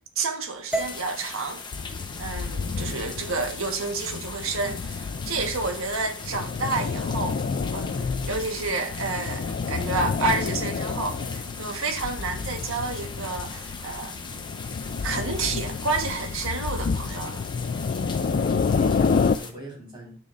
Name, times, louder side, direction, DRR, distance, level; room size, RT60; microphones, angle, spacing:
voice 1, 0.2-1.6 2.2-14.1 15.0-17.4, right 3 dB, 70° right, 1.4 m, -30 dB
sound 1, 0.7-19.5, left 4 dB, 20° left, 1.0 m, -40 dB
sound 2, 0.7-4.9, right 2 dB, 5° right, 0.9 m, -38 dB
sound 3, 1.7-19.4, left 5 dB, 45° left, 0.3 m, -29 dB
voice 2, 18.2-20.2, right 1 dB, 25° right, 4.4 m, -39 dB
12.5 x 6.2 x 2.6 m
head